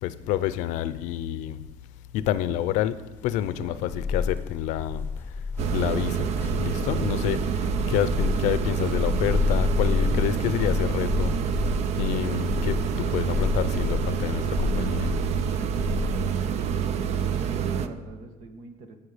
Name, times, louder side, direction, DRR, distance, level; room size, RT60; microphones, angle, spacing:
voice 1, 0.0-1.8 2.1-5.4 5.7-11.4 12.0-15.2, left 12 dB, 85° left, 0.5 m, -28 dB
sound 1, 3.3-16.8, left 5 dB, 20° left, 0.7 m, -30 dB
voice 2, 3.5-3.9 16.8-19.0, right 3 dB, 80° right, 1.4 m, -42 dB
sound 2, 5.6-17.9, right 8 dB, 65° right, 0.6 m, -27 dB
17.0 x 5.7 x 5.0 m
cardioid pair, 110°, 12 cm